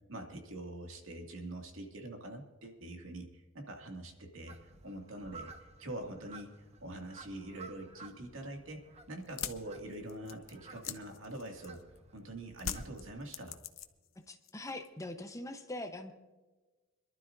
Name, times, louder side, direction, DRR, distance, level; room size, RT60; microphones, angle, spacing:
voice 1, 0.1-6.5 6.8-8.8 9.1-11.8 12.1-13.6, right 1 dB, 80° right, 3 dB, 2.2 m, -44 dB
sound 1, 4.5-13.2, right 3 dB, 35° right, 1.2 m, -55 dB
sound 2, 9.2-12.0 12.6-14.1 14.4-15.0, left 9 dB, 90° left, 0.8 m, -42 dB
voice 2, 14.2-16.1, left 1 dB, 15° left, 6 dB, 0.9 m, -42 dB
26.5 x 12.0 x 2.6 m, 1.2 s
head